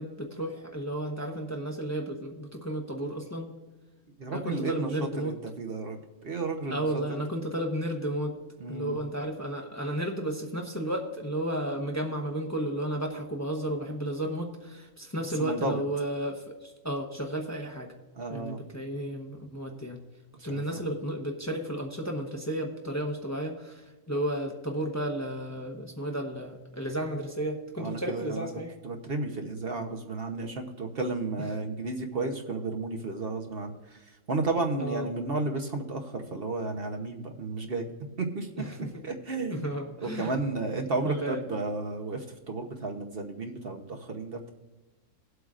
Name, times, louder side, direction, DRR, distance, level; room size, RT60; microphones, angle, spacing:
voice 1, 0.0-3.5 4.3-5.3 6.7-8.4 8.7-17.9 18.3-20.0 20.4-28.7 31.4-31.5 34.8-35.1 38.6-39.0 39.5-40.3 41.0-41.4, right 1 dB, 15° left, 1 dB, 1.0 m, -33 dB
voice 2, 4.2-4.9 5.2-6.9 8.6-8.9 15.4-15.8 18.1-18.6 20.5-20.8 27.8-28.5 28.8-37.9 38.2-38.5 39.0-39.6 40.0-44.5, right 3 dB, 50° right, 3 dB, 1.1 m, -33 dB
19.5 x 8.0 x 2.5 m, 1.2 s
omnidirectional pair, 1.3 m